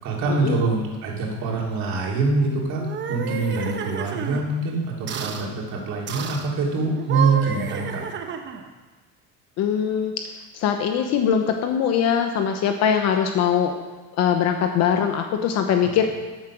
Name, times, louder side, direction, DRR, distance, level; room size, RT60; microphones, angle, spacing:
voice 1, 0.0-8.0, right 3 dB, 50° right, -3 dB, 3.2 m, -24 dB
sound 1, 2.7-4.4 5.1-5.5 6.1-6.5 7.0-8.7, right 7 dB, 30° right, 1.0 m, -30 dB
voice 2, 9.6-10.3 10.5-13.7 14.2-16.1, left 8 dB, 50° left, 5 dB, 1.0 m, -22 dB
14.0 x 8.8 x 6.2 m, 1.3 s
cardioid pair, 165°, 35 cm